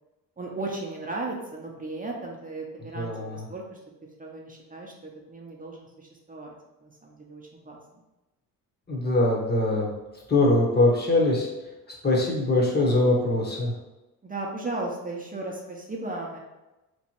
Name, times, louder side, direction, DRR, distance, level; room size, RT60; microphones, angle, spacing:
voice 1, 0.4-3.8 4.2-6.6 6.8-7.8 14.2-16.4, right 2 dB, 20° right, -1 dB, 0.8 m, -36 dB
voice 2, 2.9-3.4 8.9-9.9 10.3-11.5 12.0-13.7, left 2 dB, 25° left, -2 dB, 1.2 m, -22 dB
3.4 x 3.1 x 2.9 m, 1.0 s
cardioid pair, 80°, 38 cm